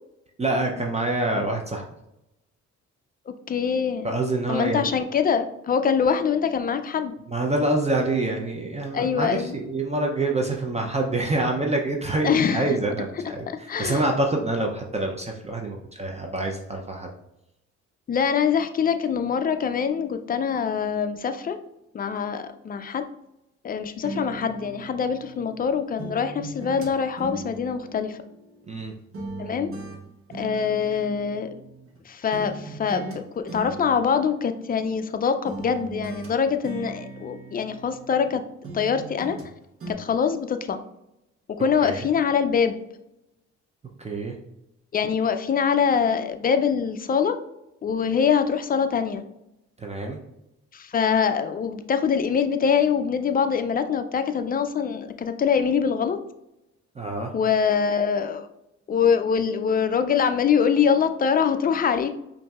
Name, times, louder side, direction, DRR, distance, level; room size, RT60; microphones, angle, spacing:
voice 1, 0.4-1.8 4.0-4.9 7.3-17.1 28.7-28.9 41.8-42.1 44.0-44.4 49.8-50.2 57.0-57.3, right 2 dB, 20° right, 1 dB, 0.5 m, -26 dB
voice 2, 3.3-4.1 4.5-7.1 8.9-9.6 12.2-12.8 13.7-14.0 18.1-21.6 21.9-23.0 23.6-28.2 29.4-29.7 30.3-31.5 32.1-38.4 38.7-39.4 39.9-40.8 41.6-42.7 44.9-47.4 47.8-49.2 50.7-56.2 57.3-58.5 58.9-62.1, left 7 dB, 30° left, 8 dB, 0.4 m, -24 dB
sound 1, 24.0-25.6 26.0-28.8 29.1-32.0 32.3-33.2 33.5-35.1 35.4-38.3 38.6-39.5 39.8-39.9, right 3 dB, 45° right, 1.0 m, -39 dB
5.2 x 2.6 x 2.3 m, 0.87 s
cardioid pair, 90°, 30 cm